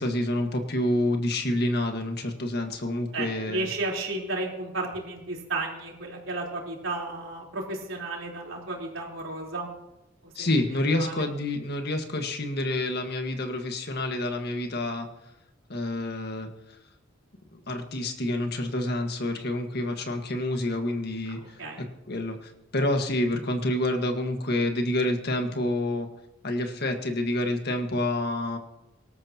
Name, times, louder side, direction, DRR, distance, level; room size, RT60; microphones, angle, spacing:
voice 1, 0.0-3.7 10.4-15.1 15.7-16.5 17.5-26.1 26.4-28.6, left 1 dB, 55° left, 5 dB, 1.7 m, -28 dB
voice 2, 3.1-9.7 10.4-10.5 11.0-11.2 21.4-21.8, right 2 dB, 85° right, -2 dB, 4.0 m, -33 dB
25.0 x 13.0 x 3.0 m, 0.94 s
head